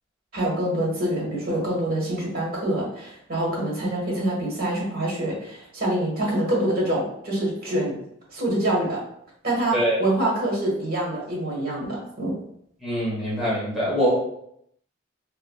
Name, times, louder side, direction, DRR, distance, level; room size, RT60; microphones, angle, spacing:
voice 1, 0.3-7.9 8.3-9.0 9.4-12.4, right 1 dB, 50° right, -3 dB, 1.2 m, -25 dB
voice 2, 12.8-14.1, equal, ahead, -9 dB, 1.0 m, -23 dB
3.2 x 2.9 x 2.2 m, 0.72 s
head